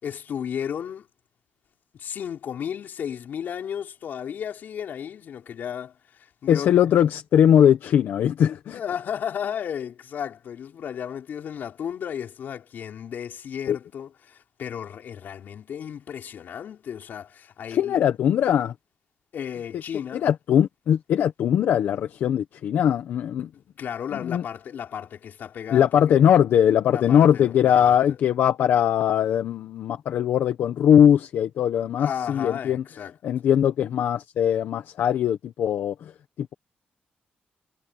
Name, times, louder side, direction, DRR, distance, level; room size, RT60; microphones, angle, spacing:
voice 1, 0.0-1.1 2.0-6.9 8.7-18.0 19.3-20.3 23.5-26.0 26.9-28.2 32.0-33.1, left 8 dB, 65° left, 5.4 m, -34 dB
voice 2, 6.5-8.8 13.7-13.8 17.7-18.7 20.2-23.5 24.2-24.4 25.7-32.8 33.2-36.1 36.4-36.5, left 9 dB, 80° left, 1.3 m, -20 dB
wide cardioid pair, 145°, 3 cm